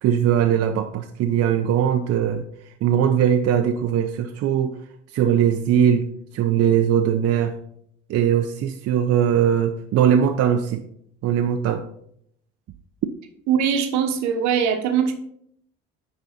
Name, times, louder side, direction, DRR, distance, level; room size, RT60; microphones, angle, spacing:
voice 1, 0.0-2.4 2.8-4.7 5.1-6.1 6.3-7.6 8.1-10.8 11.2-11.8, right 9 dB, 55° right, 5 dB, 0.6 m, -20 dB
voice 2, 13.5-15.1, right 7 dB, 70° right, 7 dB, 1.1 m, -21 dB
9.7 x 4.1 x 4.0 m, 0.70 s
hypercardioid pair, 65°, 29 cm